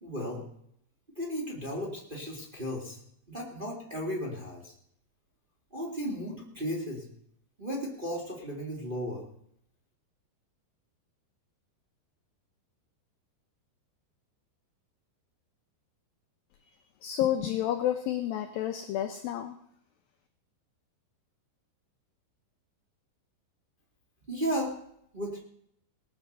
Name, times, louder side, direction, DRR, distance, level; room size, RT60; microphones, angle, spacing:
voice 1, 0.0-0.4 1.1-3.0 3.3-4.7 5.7-7.1 7.6-9.2 24.3-24.7 25.1-25.4, equal, 20° right, -1 dB, 1.3 m, -34 dB
voice 2, 17.0-19.6, left 11 dB, 90° left, 7 dB, 2.0 m, -30 dB
19.0 x 8.0 x 6.6 m, 0.71 s
omnidirectional pair, 5.2 m